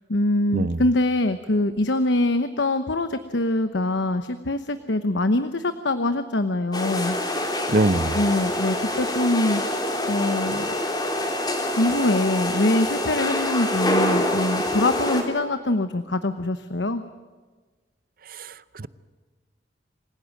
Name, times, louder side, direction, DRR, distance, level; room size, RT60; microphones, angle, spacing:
voice 1, 0.1-7.2 8.1-9.6 10.1-10.7 11.8-17.0, left 2 dB, 80° left, 10 dB, 1.0 m, -23 dB
sound 1, 6.7-15.2, left 1 dB, 25° left, 3.6 m, -26 dB
voice 2, 7.7-8.2 18.3-18.9, right 2 dB, 50° right, 16 dB, 0.7 m, -23 dB
27.0 x 16.5 x 9.0 m, 1.4 s
head